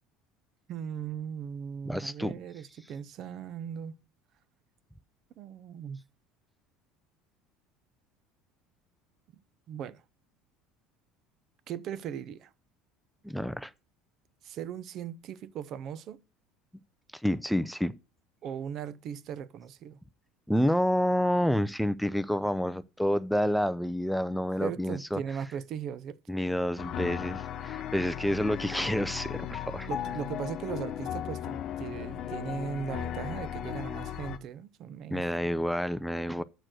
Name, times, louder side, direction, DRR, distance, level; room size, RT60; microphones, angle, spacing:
voice 1, 0.7-4.0 5.4-6.0 9.7-10.0 11.7-12.5 14.4-16.2 18.4-20.0 24.6-26.2 29.9-35.6, right 8 dB, 50° right, 0.6 m, -38 dB
voice 2, 1.9-2.3 13.2-13.7 17.1-17.9 20.5-25.2 26.3-29.9 35.1-36.4, equal, ahead, 0.4 m, -29 dB
sound 1, 26.8-34.4, left 10 dB, 45° left, 1.0 m, -36 dB
6.7 x 6.1 x 6.3 m
cardioid pair, 135°, 0 cm